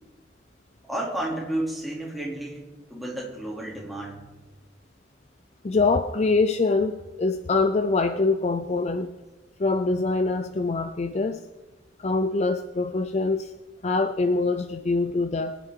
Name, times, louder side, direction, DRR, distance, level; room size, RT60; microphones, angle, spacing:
voice 1, 0.8-2.6 2.9-4.2, right 1 dB, ahead, -4 dB, 2.9 m, -31 dB
voice 2, 5.6-9.1 9.6-11.4 12.0-13.5 13.8-15.6, left 3 dB, 35° left, 9 dB, 0.5 m, -24 dB
23.5 x 9.3 x 3.8 m, 1.2 s
head